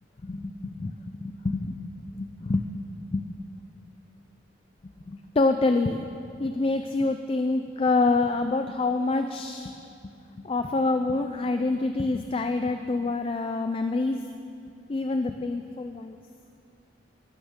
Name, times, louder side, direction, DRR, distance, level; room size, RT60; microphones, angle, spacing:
voice 1, 0.2-3.2 4.8-6.0 6.4-9.7 10.4-14.2 14.9-16.2, left 3 dB, 30° left, 7 dB, 0.3 m, -27 dB
15.5 x 12.0 x 3.7 m, 2.7 s
head